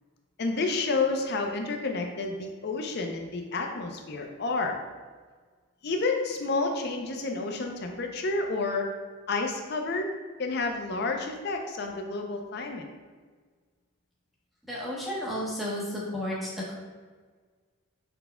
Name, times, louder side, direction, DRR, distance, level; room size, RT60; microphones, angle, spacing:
voice 1, 0.4-4.8 5.8-8.9 9.3-10.1 10.4-12.9, left 3 dB, 50° left, 3 dB, 0.5 m, -30 dB
voice 2, 14.7-16.7, equal, ahead, -7 dB, 0.9 m, -32 dB
5.6 x 4.1 x 2.2 m, 1.5 s
head